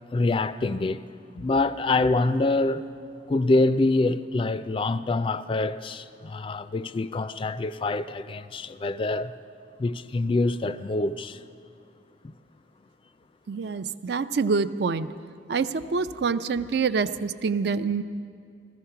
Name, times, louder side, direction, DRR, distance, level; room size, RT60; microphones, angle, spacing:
voice 1, 0.1-1.0 1.3-2.8 3.3-9.3 9.8-11.4 12.2-12.3, left 2 dB, 30° left, 0.3 m, -25 dB
voice 2, 13.5-15.1 15.5-18.0, right 5 dB, 65° right, 0.4 m, -26 dB
14.5 x 13.5 x 5.7 m
head